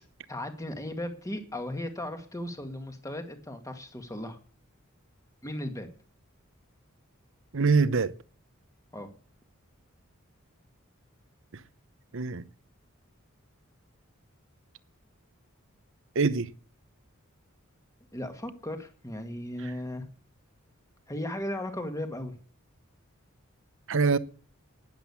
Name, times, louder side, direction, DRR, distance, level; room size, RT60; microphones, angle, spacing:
voice 1, 0.3-4.4 5.4-5.9 8.9-9.1 18.1-20.1 21.1-22.4, left 1 dB, 15° left, 2.1 m, -36 dB
voice 2, 7.5-8.2 11.5-11.6 12.1-12.4 16.1-16.5 23.9-24.2, right 4 dB, 65° right, 0.8 m, -24 dB
12.0 x 10.5 x 7.0 m
head